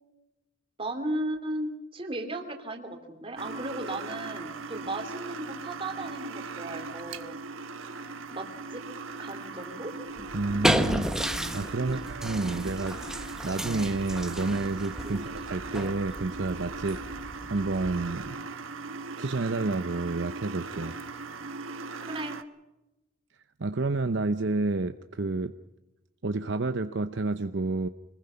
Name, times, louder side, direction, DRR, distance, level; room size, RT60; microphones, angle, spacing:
voice 1, 0.8-7.4 8.3-8.8 9.2-9.9 11.7-12.1 15.0-15.2 22.0-22.4, right 1 dB, 25° right, 5 dB, 3.0 m, -36 dB
sound 1, 3.4-22.4, right 4 dB, 75° right, 1.3 m, -39 dB
sound 2, 10.2-18.3, equal, 5° right, 1.1 m, -32 dB
voice 2, 10.3-11.1 11.5-13.0 13.4-17.0 17.5-18.4 19.2-20.9 23.6-25.5 26.2-27.9, right 3 dB, 60° right, 9 dB, 0.7 m, -29 dB
26.0 x 20.5 x 5.8 m, 0.97 s
head